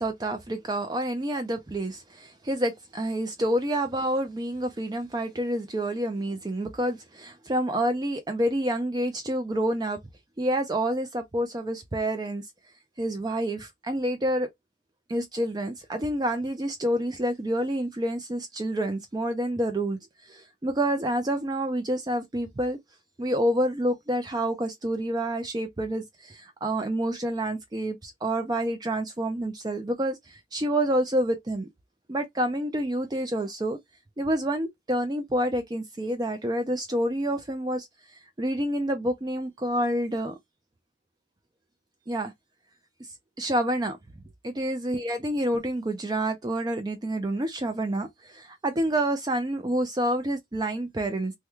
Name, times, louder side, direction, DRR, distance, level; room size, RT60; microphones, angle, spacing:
voice 1, 0.0-10.0 10.4-12.5 13.0-14.5 15.1-22.8 23.2-31.7 32.1-33.8 34.2-37.9 38.4-40.4 42.1-42.3 43.0-43.1 43.4-44.0 44.4-51.3, right 1 dB, 20° right, 0.4 m, -28 dB
3.0 x 2.2 x 3.4 m
head